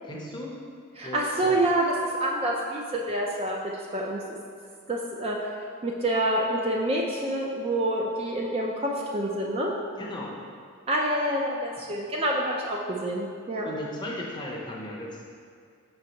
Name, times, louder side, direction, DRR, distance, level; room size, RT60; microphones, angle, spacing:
voice 1, 0.0-0.6 1.0-1.3 10.0-10.3 13.6-15.2, left 1 dB, 20° left, -3 dB, 0.6 m, -36 dB
voice 2, 1.0-4.2 4.9-5.5 5.8-9.7 10.9-13.7, right 1 dB, 25° right, -1 dB, 0.4 m, -27 dB
5.5 x 4.0 x 4.4 m, 2.2 s
head